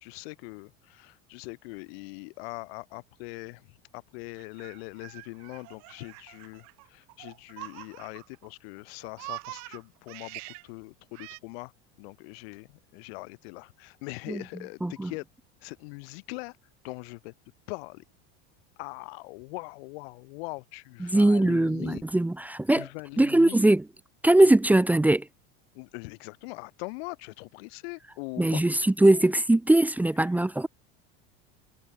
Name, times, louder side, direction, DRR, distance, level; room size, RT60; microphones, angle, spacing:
voice 1, 0.0-11.7 12.0-15.2 15.6-16.6 16.8-17.3 17.7-18.0 18.8-22.0 22.7-23.7 24.4-24.5 25.7-29.4, left 28 dB, 75° left, 3.1 m, -41 dB
Laughter, 4.4-8.5 8.8-10.7 11.1-11.4, right 27 dB, 60° right, 2.7 m, -44 dB
voice 2, 21.0-22.9 23.2-23.8 24.2-25.3 28.4-30.7, right 1 dB, 5° right, 1.3 m, -21 dB
supercardioid pair, 140°, 32 cm